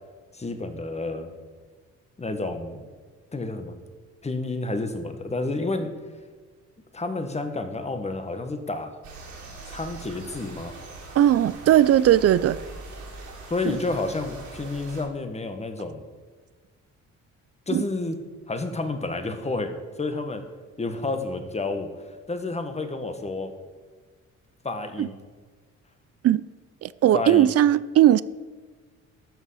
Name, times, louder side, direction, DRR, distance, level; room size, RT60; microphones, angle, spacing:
voice 1, 0.3-1.3 2.2-2.9 3.3-3.8 4.2-5.9 6.9-9.0 9.7-10.8 13.5-16.0 17.7-18.2 18.5-20.4 20.8-23.5 24.6-25.1 27.1-27.5, left 2 dB, 20° left, 1.4 m, -30 dB
sound 1, 9.0-15.0, right 3 dB, 75° right, 3.6 m, -42 dB
voice 2, 11.2-12.6 17.7-17.8 25.0-25.1 26.2-26.4 26.8-28.2, right 12 dB, 55° right, 0.4 m, -18 dB
13.5 x 5.4 x 5.6 m
cardioid pair, 90°, 30 cm